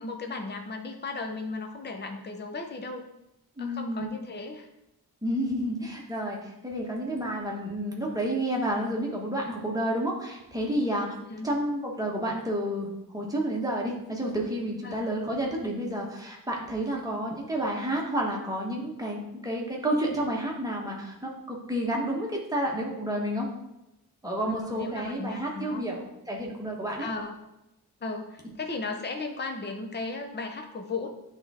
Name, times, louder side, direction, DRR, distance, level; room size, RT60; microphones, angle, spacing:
voice 1, 0.0-3.1 3.6-4.7 11.3-11.5 14.8-15.1 16.9-17.2 24.5-25.9 27.0-27.4 28.0-31.1, left 3 dB, 25° left, 4 dB, 0.6 m, -36 dB
voice 2, 3.6-4.1 5.2-11.1 11.4-23.5 24.2-27.1, right 1 dB, 10° right, -2 dB, 1.2 m, -30 dB
9.9 x 3.6 x 4.2 m, 0.91 s
wide cardioid pair, 165°, 40 cm